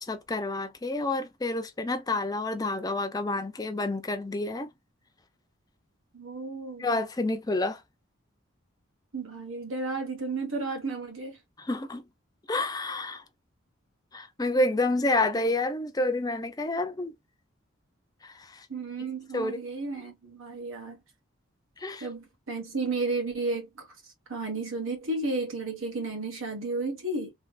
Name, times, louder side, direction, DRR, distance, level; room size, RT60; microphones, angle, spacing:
voice 1, 0.1-4.7 6.8-7.8 11.6-12.0 12.5-13.2 14.1-17.1 18.2-18.7 19.3-19.6 21.8-22.1, left 2 dB, 20° left, 0.5 m, -29 dB
voice 2, 6.1-6.9 9.1-11.4 18.7-21.0 22.0-23.9 24.3-27.3, right 3 dB, 80° right, 1.4 m, -33 dB
3.2 x 3.0 x 2.4 m
head